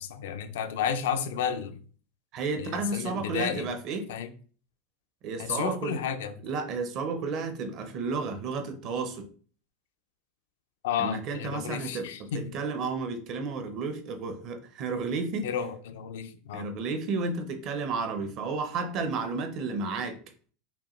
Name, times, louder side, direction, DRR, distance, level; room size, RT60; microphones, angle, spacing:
voice 1, 0.0-1.8 2.6-3.7 4.1-4.3 5.4-6.3 10.8-12.5 15.4-16.7, left 8 dB, 85° left, 0.4 m, -32 dB
voice 2, 2.3-4.1 5.2-6.0 6.4-9.3 11.0-15.5 16.5-20.2, right 4 dB, 50° right, 0.7 m, -32 dB
5.3 x 2.3 x 3.1 m
supercardioid pair, 125°, 0 cm